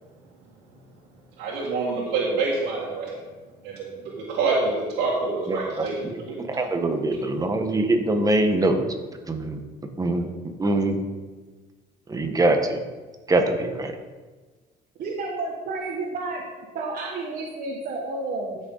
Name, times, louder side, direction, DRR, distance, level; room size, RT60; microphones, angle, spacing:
voice 1, 1.4-3.1 3.6-3.8 4.2-5.9 6.3-6.4, right 3 dB, 90° right, -7 dB, 2.3 m, -26 dB
voice 2, 5.5-8.8 9.3-9.6 10.0-10.3 10.6-11.0 12.1-12.8 13.3-13.9, right 2 dB, 20° right, 5 dB, 1.3 m, -23 dB
voice 3, 15.0-16.4 16.7-18.6, right 3 dB, 55° right, -2 dB, 1.6 m, -31 dB
14.0 x 6.6 x 4.0 m, 1.3 s
cardioid pair, 110°, 17 cm